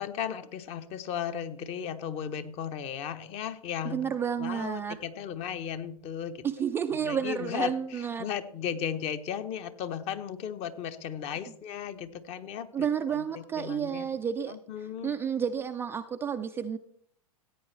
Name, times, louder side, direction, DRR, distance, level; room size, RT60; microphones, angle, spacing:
voice 1, 0.0-4.0 4.4-6.4 7.0-13.2 13.6-14.1 14.5-15.1, left 8 dB, 35° left, 11 dB, 0.9 m, -35 dB
voice 2, 3.8-5.0 6.4-8.3 12.7-14.6 15.0-16.8, right 8 dB, 10° right, 6 dB, 0.3 m, -31 dB
15.5 x 8.7 x 3.2 m, 0.64 s
hypercardioid pair, 110°, 20 cm